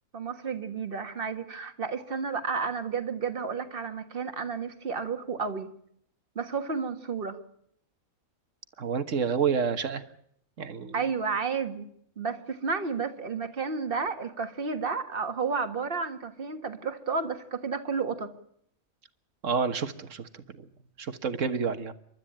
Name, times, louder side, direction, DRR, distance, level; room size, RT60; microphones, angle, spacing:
voice 1, 0.1-5.7 6.4-7.4 10.9-11.9 12.2-18.3, right 5 dB, 45° right, 8 dB, 1.8 m, -31 dB
voice 2, 8.8-10.0 10.6-11.0 19.4-20.7 21.0-21.9, right 6 dB, 65° right, 10 dB, 1.7 m, -29 dB
29.0 x 12.5 x 8.8 m, 0.72 s
omnidirectional pair, 1.4 m